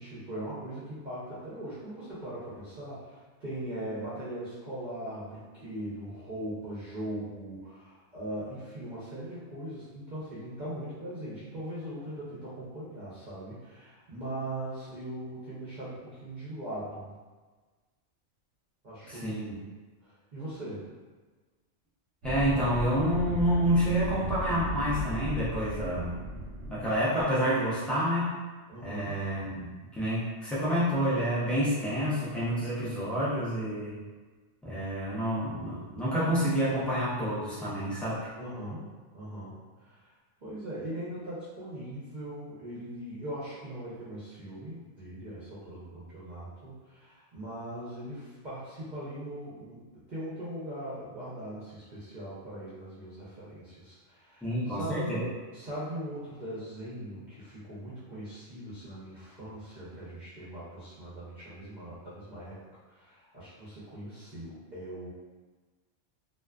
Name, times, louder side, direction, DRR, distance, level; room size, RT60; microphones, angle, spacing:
voice 1, 0.0-17.1 18.8-19.4 20.0-20.8 28.7-29.3 38.4-40.1 40.4-55.1 55.5-62.6 62.9-65.1, right 1 dB, 45° right, -10 dB, 0.7 m, -40 dB
voice 2, 19.1-19.5 22.2-26.1 26.7-28.3 28.8-29.6 29.9-34.0 34.6-38.3 54.4-55.3, equal, ahead, -9 dB, 0.3 m, -28 dB
sound 1, 22.2-27.0, equal, 85° right, 0.9 m, -36 dB
2.4 x 2.3 x 2.3 m, 1.3 s
omnidirectional pair, 1.2 m